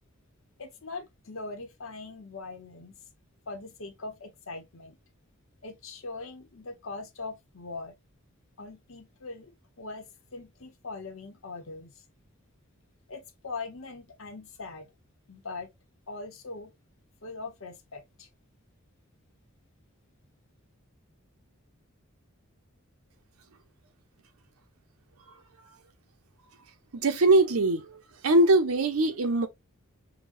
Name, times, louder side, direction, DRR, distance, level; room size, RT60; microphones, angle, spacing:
voice 1, 0.6-3.0 3.5-5.0 5.6-7.9 8.6-12.0 13.1-14.9 15.3-15.7 16.1-16.7 17.2-18.3, left 3 dB, 65° left, 0.9 m, -41 dB
voice 2, 26.9-27.9 28.2-29.5, right 2 dB, 85° right, 0.7 m, -21 dB
5.0 x 2.2 x 2.5 m
head